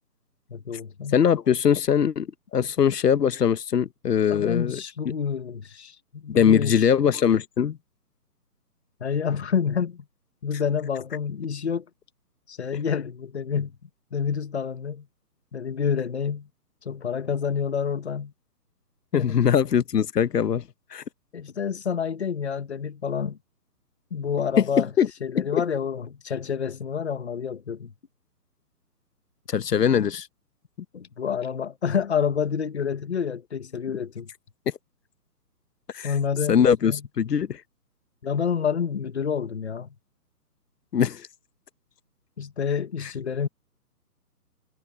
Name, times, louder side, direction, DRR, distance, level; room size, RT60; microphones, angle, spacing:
voice 1, 0.5-1.2 4.3-6.8 9.0-10.0 10.4-11.9 12.5-13.7 14.1-15.1 15.5-16.5 16.8-18.3 19.1-19.4 21.3-23.4 24.1-24.9 25.2-27.9 30.9-34.3 36.0-37.0 38.2-39.9 42.4-43.5, left 7 dB, 45° left, 1.1 m, -28 dB
voice 2, 1.1-4.8 6.3-7.8 19.1-20.6 20.9-21.0 25.0-25.1 25.4-25.6 29.5-30.3 35.9-36.1 36.5-37.6 40.9-41.3, left 8 dB, 85° left, 1.0 m, -21 dB
hypercardioid pair, 175°, 47 cm